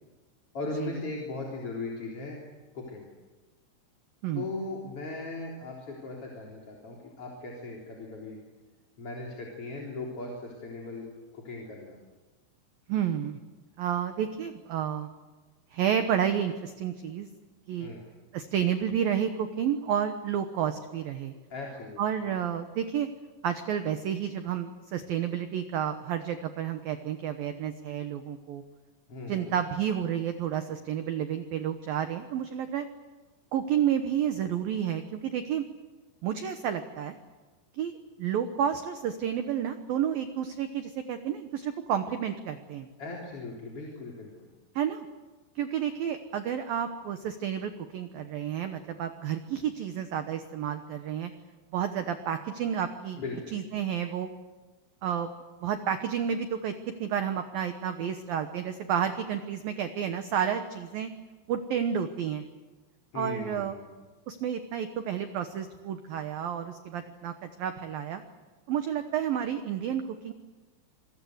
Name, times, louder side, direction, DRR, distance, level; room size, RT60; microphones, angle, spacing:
voice 1, 0.5-2.4 2.7-3.1 4.3-8.4 9.0-11.1 11.3-12.0 17.8-18.0 21.5-22.0 29.1-29.5 43.0-44.5 53.2-53.6 63.1-63.9, left 3 dB, 30° left, -2 dB, 3.9 m, -38 dB
voice 2, 12.9-13.4 13.8-15.1 15.7-17.3 17.7-17.9 18.3-21.3 22.0-23.1 23.4-28.6 29.3-32.9 33.5-35.6 36.2-37.1 37.7-37.9 38.2-42.9 44.8-45.1 45.6-51.3 51.7-53.2 53.5-54.3 55.0-55.3 55.6-56.7 57.0-61.1 61.5-62.4 63.1-63.8 64.3-68.2 68.7-70.3, right 9 dB, 80° right, 8 dB, 2.1 m, -30 dB
27.0 x 22.5 x 8.1 m, 1.3 s
omnidirectional pair, 5.9 m